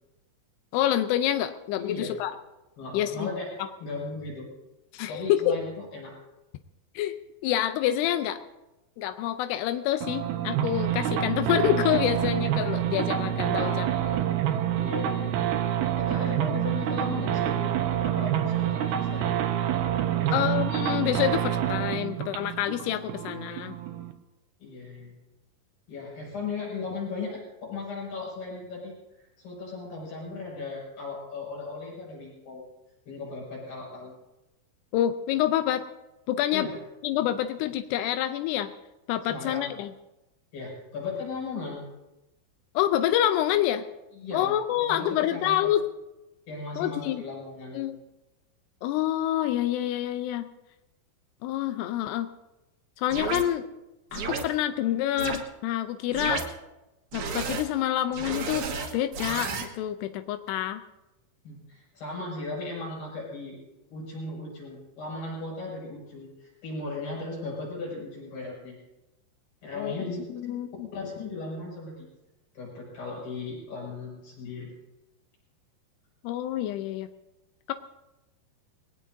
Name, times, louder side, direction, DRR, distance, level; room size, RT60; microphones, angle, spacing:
voice 1, 0.7-2.3 2.9-3.3 4.9-5.6 7.0-7.2 7.4-8.4 9.0-13.8 20.3-23.7 34.9-35.8 36.3-36.7 37.0-38.7 39.1-39.9 42.8-43.8 44.3-45.9 46.8-47.2 47.7-48.0 48.8-50.5 51.4-52.3 53.0-53.6 54.1-56.4 57.1-58.7 58.9-60.8 69.8-70.0 70.3-70.9 76.2-77.1 77.7-77.8, left 12 dB, 90° left, 9 dB, 2.8 m, -27 dB
voice 2, 1.8-2.2 2.8-3.5 3.8-4.5 5.1-6.1 13.5-14.2 14.7-15.3 16.0-17.7 18.0-19.3 20.1-20.5 24.6-25.1 25.9-32.7 33.1-34.1 36.5-36.8 39.3-39.7 40.5-41.8 44.1-44.6 44.9-45.7 46.5-47.8 61.4-63.6 63.9-68.8 69.6-70.5 70.9-72.1 72.5-74.7, left 3 dB, 60° left, -3 dB, 8.0 m, -37 dB
sound 1, 10.0-24.1, right 10 dB, 75° right, 2.8 m, -27 dB
sound 2, 53.1-53.4 54.1-54.4 55.2-55.4 56.1-56.5 57.1-57.6 58.1-59.7, right 5 dB, 60° right, 2.4 m, -32 dB
21.0 x 18.5 x 2.7 m, 0.98 s
omnidirectional pair, 4.7 m